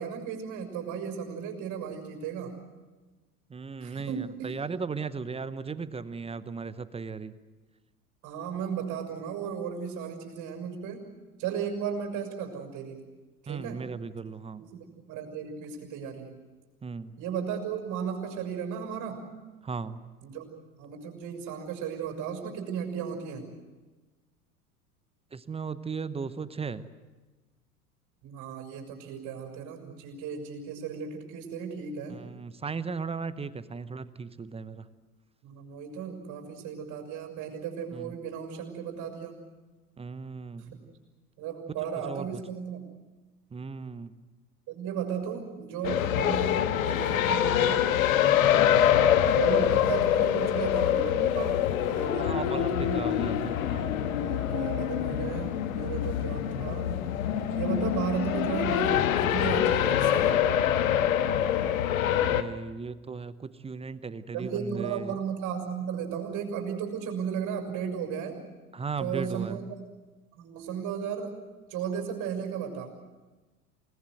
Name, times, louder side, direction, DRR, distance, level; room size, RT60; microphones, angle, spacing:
voice 1, 0.0-2.6 3.8-4.5 8.2-11.1 11.4-13.0 13.4-13.8 14.6-16.4 17.2-19.3 20.2-20.5 20.8-23.5 28.2-32.2 35.4-39.5 40.6-40.9 41.4-42.8 44.7-47.9 49.3-53.0 54.2-57.0 57.5-60.4 64.3-68.4 69.0-69.8 70.4-71.4 71.7-72.9, right 7 dB, 40° right, 2 dB, 6.0 m, -35 dB
voice 2, 3.5-7.3 13.5-14.6 16.8-17.2 19.6-20.0 25.3-26.8 32.1-34.8 37.9-38.1 40.0-40.8 42.1-42.3 43.5-44.1 52.2-54.1 62.2-65.1 68.7-69.7, right 5 dB, 15° right, 15 dB, 0.9 m, -36 dB
sound 1, 45.8-62.4, left 10 dB, 65° left, 1.5 m, -25 dB
29.0 x 19.0 x 7.9 m, 1.2 s
figure-of-eight pair, 80°, 45 cm